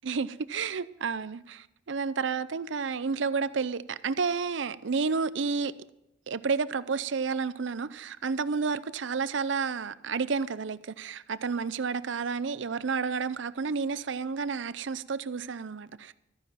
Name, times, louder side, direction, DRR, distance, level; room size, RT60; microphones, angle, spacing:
voice 1, 0.0-5.7 6.3-16.1, right 5 dB, 80° right, 0.6 m, -31 dB
13.5 x 9.9 x 5.7 m
head